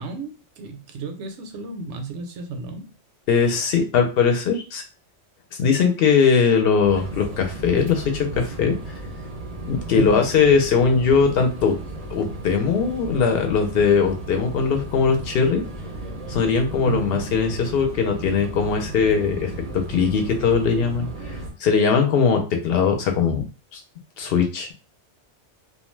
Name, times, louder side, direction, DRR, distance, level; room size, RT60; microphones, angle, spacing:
voice 1, 0.0-2.9 10.0-10.4 16.9-17.4, right 4 dB, 80° right, 0.9 m, -32 dB
voice 2, 3.3-4.8 5.6-8.8 9.7-11.8 12.1-15.6 16.3-21.1 21.6-23.4 23.7-23.8 24.2-24.7, left 5 dB, 60° left, 0.8 m, -20 dB
sound 1, 6.8-21.5, right 2 dB, 45° right, 0.5 m, -35 dB
2.4 x 2.2 x 3.1 m
omnidirectional pair, 1.2 m